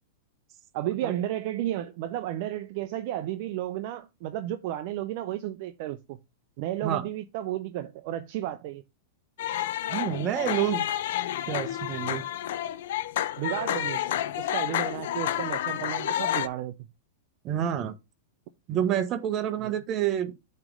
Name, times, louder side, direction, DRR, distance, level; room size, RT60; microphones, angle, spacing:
voice 1, 0.7-6.2 6.6-8.8 13.4-14.1 14.4-16.9 19.6-19.7, right 13 dB, 45° right, 0.5 m, -33 dB
sound 1, 9.4-16.5, left 12 dB, 65° left, 0.5 m, -30 dB
voice 2, 9.9-10.9 11.5-12.2 17.4-18.0 18.7-20.3, right 10 dB, 30° right, 0.9 m, -28 dB
7.5 x 3.1 x 5.1 m
supercardioid pair, 155°, 0 cm